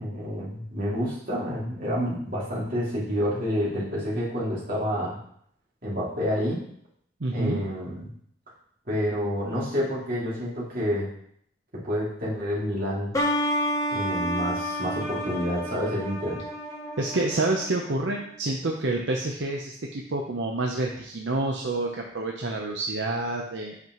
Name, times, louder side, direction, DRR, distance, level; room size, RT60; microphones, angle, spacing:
voice 1, 0.0-5.2 5.8-6.6 7.3-8.1 8.9-11.1 11.8-13.1 13.9-16.3, equal, 50° right, -7 dB, 2.7 m, -28 dB
voice 2, 7.2-7.6 17.0-23.8, right 2 dB, 75° right, 0 dB, 0.8 m, -28 dB
sound 1, 13.1-18.6, equal, 20° left, 0.9 m, -30 dB
8.2 x 5.3 x 3.1 m, 0.66 s
head